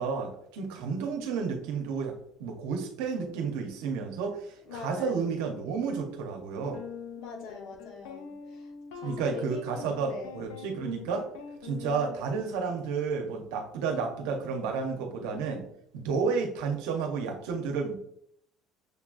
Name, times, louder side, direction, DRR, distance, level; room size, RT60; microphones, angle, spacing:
voice 1, 0.0-6.8 9.0-11.2 11.6-15.7 15.9-18.0, right 5 dB, 85° right, 3 dB, 0.6 m, -31 dB
voice 2, 4.7-5.3 7.2-10.4, left 4 dB, 65° left, 2 dB, 1.0 m, -43 dB
sound 1, 5.9-6.0 6.7-13.1, left 7 dB, 85° left, 0.6 m, -44 dB
6.4 x 2.3 x 2.4 m, 0.71 s
supercardioid pair, 90°, 0 cm